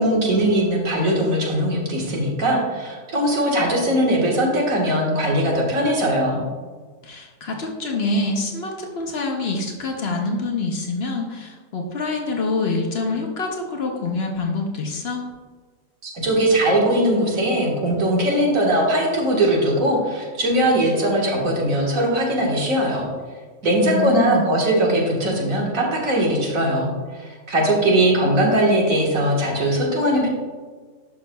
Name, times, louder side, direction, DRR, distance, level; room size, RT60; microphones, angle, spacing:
voice 1, 0.0-6.4 16.0-23.1 23.6-30.3, right 1 dB, 75° right, -2 dB, 1.9 m, -20 dB
voice 2, 7.0-15.2 23.8-24.5, left 3 dB, 55° left, 1 dB, 0.9 m, -26 dB
11.5 x 5.8 x 2.2 m, 1.4 s
omnidirectional pair, 1.4 m